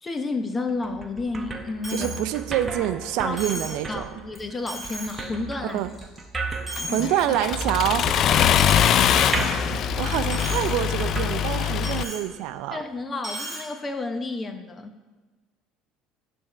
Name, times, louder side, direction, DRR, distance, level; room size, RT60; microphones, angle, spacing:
voice 1, 0.0-2.1 3.2-3.6 3.9-5.8 8.4-8.8 12.7-15.0, left 3 dB, 20° left, 7 dB, 0.7 m, -31 dB
sound 1, 0.7-12.2, right 2 dB, 20° right, 0.7 m, -34 dB
Coin (dropping), 1.8-2.2 2.6-2.7 3.4-3.8 4.3-4.4 4.7-5.2 5.7-6.2 6.5-7.2 7.6-7.8 8.6-9.8 10.1-10.7 11.0-11.1 11.8-12.3 13.2-13.6, right 1 dB, 5° right, 2.8 m, -36 dB
voice 2, 1.9-4.1 5.6-5.9 6.9-8.1 9.9-12.8, right 12 dB, 70° right, 11 dB, 0.4 m, -26 dB
Accelerating revving vroom, 6.8-12.0, left 9 dB, 45° left, 0.3 m, -23 dB
10.0 x 3.5 x 6.6 m, 1.3 s
cardioid pair, 130°, 0 cm